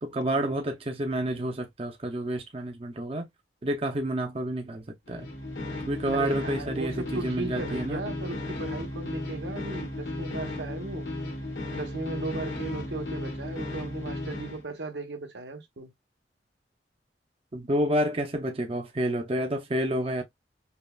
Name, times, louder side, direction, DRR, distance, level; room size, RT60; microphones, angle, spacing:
voice 1, 0.0-3.3 3.6-5.3 5.9-8.0 17.5-20.2, right 1 dB, 35° right, 0.6 m, -29 dB
sound 1, 5.1-14.6, left 2 dB, 85° left, 1.4 m, -35 dB
voice 2, 6.1-11.1 11.7-15.9, right 2 dB, 70° right, 1.0 m, -37 dB
5.4 x 2.3 x 2.3 m
head